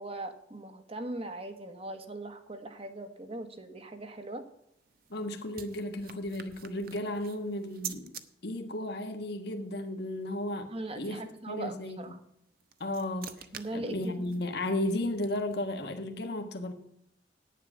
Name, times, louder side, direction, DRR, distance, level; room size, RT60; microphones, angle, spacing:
voice 1, 0.0-4.4 10.7-12.2 13.5-14.4, right 2 dB, 35° right, 7 dB, 1.4 m, -40 dB
sound 1, 4.6-8.2 12.4-15.7, right 9 dB, 55° right, 1.0 m, -47 dB
voice 2, 5.1-8.2 8.4-11.2 11.5-12.1 12.8-13.5 13.7-16.7, left 1 dB, 65° left, 4 dB, 1.4 m, -34 dB
11.0 x 9.5 x 6.1 m, 0.76 s
head